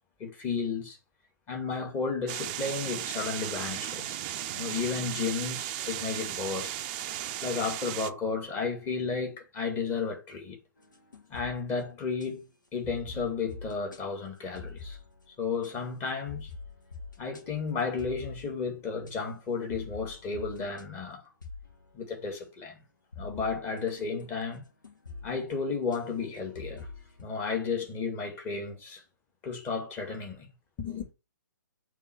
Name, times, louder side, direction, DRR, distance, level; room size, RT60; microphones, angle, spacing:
voice 1, 0.2-1.0 1.5-4.2 4.5-6.8 7.4-10.6 11.3-12.4 12.7-15.0 15.4-16.5 17.2-21.2 21.9-22.8 23.2-24.6 25.2-26.9 27.2-29.0 29.4-30.5 30.8-31.1, left 5 dB, 20° left, 2.2 m, -33 dB
sound 1, 2.3-8.1, right 12 dB, 30° right, 0.5 m, -35 dB
sound 2, 10.8-12.3 12.8-14.0 14.5-15.3 15.6-15.7 16.3-19.1 19.7-20.8 21.4-22.2 23.1-27.2, left 4 dB, 75° left, 1.6 m, -45 dB
7.1 x 3.2 x 6.1 m
figure-of-eight pair, 130°, 10 cm